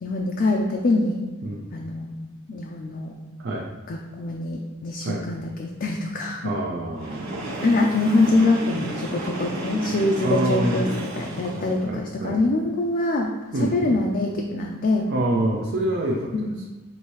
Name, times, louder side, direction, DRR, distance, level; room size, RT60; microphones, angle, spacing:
voice 1, 0.0-1.2 1.7-3.2 3.9-6.5 7.6-13.3 13.5-15.1 16.3-16.6, left 2 dB, 45° left, 0 dB, 0.4 m, -24 dB
voice 2, 6.4-7.3 10.2-10.9 11.6-12.4 13.5-14.0 15.1-16.3, right 1 dB, 55° right, -2 dB, 0.5 m, -26 dB
Train, 6.9-11.9, right 1 dB, 80° right, 1.3 m, -32 dB
5.6 x 2.7 x 3.0 m, 1.2 s
head